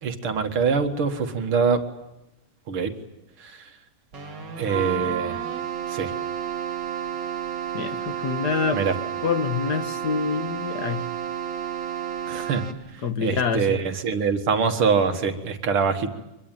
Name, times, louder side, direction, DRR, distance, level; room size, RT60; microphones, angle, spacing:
voice 1, 0.0-1.8 2.7-2.9 3.4-3.7 4.6-5.4 5.9-6.1 8.7-8.9 12.3-12.6 12.9-16.1, right 5 dB, 85° right, 7 dB, 2.6 m, -24 dB
Keyboard (musical), 4.1-13.1, right 5 dB, 55° right, 2.9 m, -38 dB
Wind instrument woodwind instrument, 4.6-12.8, right 11 dB, 70° right, 2.2 m, -32 dB
voice 2, 7.7-8.8 9.2-11.1 13.0-13.8, left 5 dB, 55° left, 8 dB, 1.8 m, -26 dB
24.5 x 21.5 x 9.1 m, 0.93 s
omnidirectional pair, 2.3 m